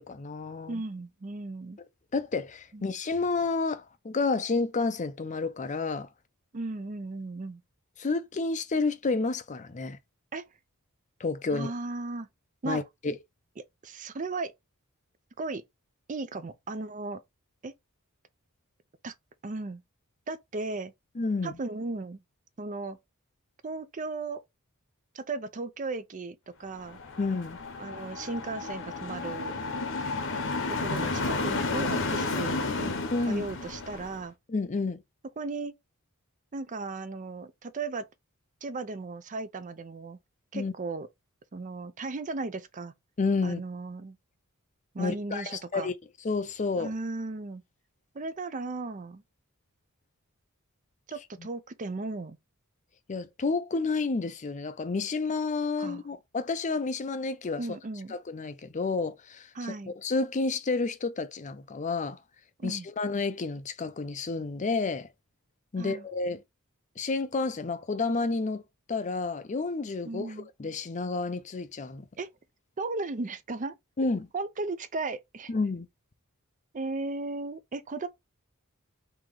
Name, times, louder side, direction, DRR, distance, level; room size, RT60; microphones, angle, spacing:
voice 1, 0.0-0.8 2.1-6.1 8.0-10.0 11.2-11.7 12.6-13.2 21.2-21.6 27.2-27.6 33.1-33.4 34.5-35.0 40.5-40.7 43.2-43.6 45.0-45.9 46.2-46.9 51.4-51.5 53.1-57.7 58.1-59.5 59.9-62.2 62.6-65.1 65.7-66.4 67.0-68.6 68.9-70.3 70.6-72.0 74.0-74.3 75.5-75.9, left 3 dB, 35° left, 0.5 m, -30 dB
voice 2, 0.7-1.8 2.7-3.0 6.5-7.6 10.3-10.4 11.5-12.3 12.6-12.8 13.6-14.5 15.4-15.6 16.1-17.2 17.6-17.7 19.0-19.1 19.4-19.8 20.3-20.9 21.4-22.2 22.6-23.0 23.6-24.4 25.1-27.0 27.8-29.6 30.7-34.3 35.4-35.8 36.5-38.1 38.6-40.2 40.5-41.1 41.5-42.9 43.4-44.2 44.9-45.9 46.8-47.6 48.1-49.2 51.1-52.4 55.8-56.0 57.6-58.2 59.5-59.9 62.6-62.9 65.8-66.1 70.0-70.5 72.2-72.3 72.8-73.7 74.3-75.5 76.7-78.1, right 3 dB, 35° right, 0.5 m, -36 dB
sound 1, 26.8-34.2, left 3 dB, 60° left, 0.9 m, -32 dB
3.8 x 2.9 x 4.8 m
head